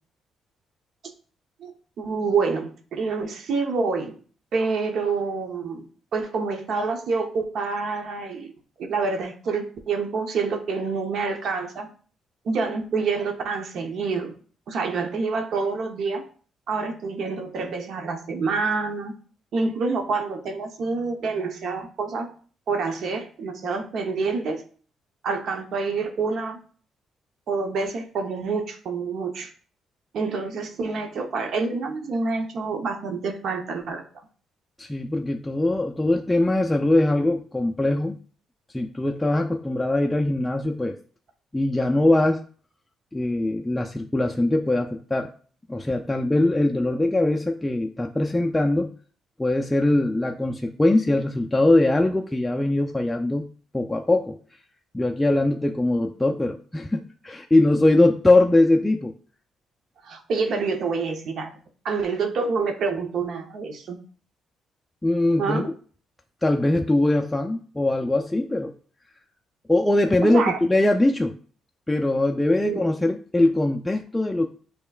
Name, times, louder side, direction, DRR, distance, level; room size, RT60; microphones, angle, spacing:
voice 1, 1.6-4.2 4.5-5.9 6.1-8.5 8.8-11.9 12.4-14.3 14.7-16.2 16.7-19.1 19.5-22.3 22.7-24.6 25.2-26.6 27.5-29.5 30.1-34.0 60.0-61.5 61.8-64.0 65.4-65.7 70.2-70.6 72.6-72.8, right 4 dB, 65° right, 4 dB, 0.8 m, -27 dB
voice 2, 34.8-38.2 38.7-41.0 41.5-42.4 43.1-45.3 45.7-48.9 49.4-53.5 53.7-54.4 54.9-59.1 65.0-65.6 66.4-68.7 69.7-71.3 71.9-74.5, left 2 dB, 10° left, 2 dB, 0.4 m, -21 dB
6.5 x 3.0 x 2.4 m, 0.43 s
cardioid pair, 90°, 0 cm